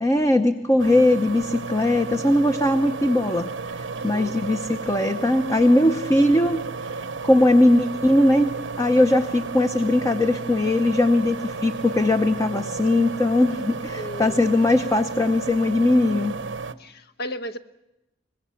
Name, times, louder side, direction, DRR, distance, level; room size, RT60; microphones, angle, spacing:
voice 1, 0.0-3.5 4.0-6.9 7.2-8.5 8.8-16.4, left 1 dB, 15° left, 0.7 m, -20 dB
sound 1, 0.8-16.7, right 4 dB, 70° right, 0.8 m, -33 dB
voice 2, 3.9-4.4 13.9-14.4 16.8-17.6, left 1 dB, 55° left, 1.0 m, -35 dB
24.0 x 20.0 x 7.1 m
head